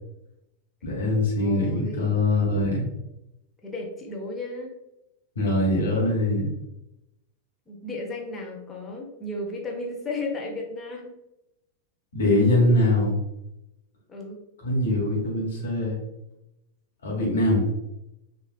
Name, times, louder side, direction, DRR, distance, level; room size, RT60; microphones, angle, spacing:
voice 1, 0.8-2.8 5.3-6.5 12.1-13.2 14.6-16.0 17.0-17.6, left 1 dB, 65° left, -2 dB, 1.0 m, -22 dB
voice 2, 1.4-2.1 3.6-4.7 7.7-11.1 14.1-14.4 17.1-17.4, left 2 dB, 15° left, -1 dB, 0.7 m, -34 dB
3.2 x 2.5 x 2.4 m, 0.89 s
figure-of-eight pair, 90°, 0 cm